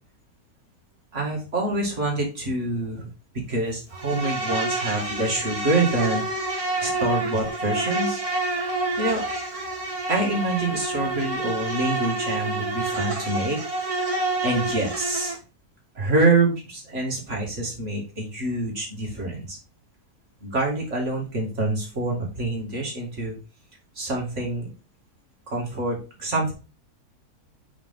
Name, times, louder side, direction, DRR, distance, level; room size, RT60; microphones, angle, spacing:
voice 1, 1.1-3.1 3.5-6.2 6.8-8.2 9.0-9.2 10.1-13.6 14.4-15.4 16.0-19.6 20.4-23.4 24.0-24.7 25.5-26.5, right 2 dB, 45° right, -1 dB, 2.4 m, -26 dB
Insect, 3.9-15.4, right 2 dB, 20° right, 1.5 m, -28 dB
5.5 x 5.0 x 3.7 m, 0.33 s
omnidirectional pair, 1.7 m